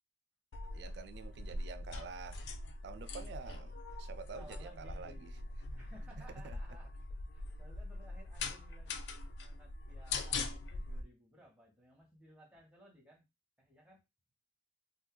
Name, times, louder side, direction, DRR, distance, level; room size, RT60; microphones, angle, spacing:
sound 1, 0.5-11.0, left 3 dB, 60° left, 0.4 m, -42 dB
voice 1, 0.7-2.4 2.8-3.7 4.0-5.3 6.4-6.6, right 5 dB, 60° right, 0.3 m, -48 dB
voice 2, 4.3-5.5 5.7-6.9 7.3-8.9 9.4-13.3 13.6-14.0, equal, 5° right, 1.0 m, -59 dB
2.4 x 2.3 x 3.7 m
head